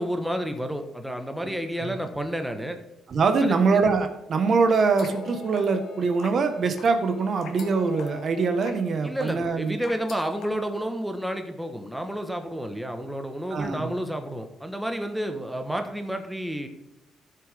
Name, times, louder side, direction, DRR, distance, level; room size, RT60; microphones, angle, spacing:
voice 1, 0.0-2.8 3.4-3.6 9.0-16.7, equal, 5° right, 6 dB, 1.2 m, -30 dB
voice 2, 3.1-9.8 13.5-13.9, right 4 dB, 55° right, 7 dB, 1.3 m, -23 dB
sound 1, 4.9-10.5, left 6 dB, 75° left, 1.5 m, -44 dB
13.0 x 6.9 x 3.5 m, 0.95 s
cardioid pair, 90°, 0 cm